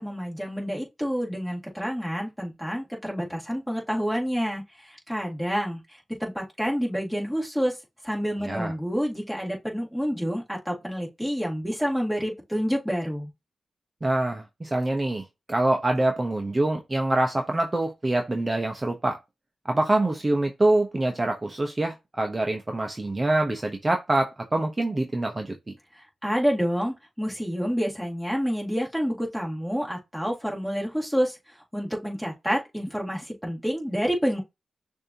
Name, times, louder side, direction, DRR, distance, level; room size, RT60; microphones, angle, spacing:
voice 1, 0.0-7.8 8.0-13.3 25.9-34.4, equal, ahead, 2.3 m, -28 dB
voice 2, 14.0-19.2 19.6-25.5, right 2 dB, 25° right, 0.8 m, -25 dB
6.4 x 2.7 x 2.8 m
cardioid pair, 70°, 0 cm